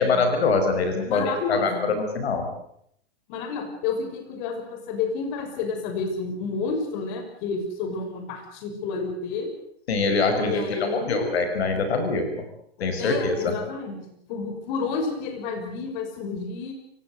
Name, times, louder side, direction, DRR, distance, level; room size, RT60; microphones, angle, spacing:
voice 1, 0.0-2.5 9.9-12.4 12.8-13.6, left 4 dB, 85° left, 7 dB, 5.9 m, -24 dB
voice 2, 1.1-1.8 3.3-9.5 10.4-11.2 13.0-14.0 14.3-16.7, left 4 dB, 50° left, 6 dB, 6.1 m, -30 dB
28.5 x 17.0 x 8.0 m, 0.70 s
hypercardioid pair, 135°, 31 cm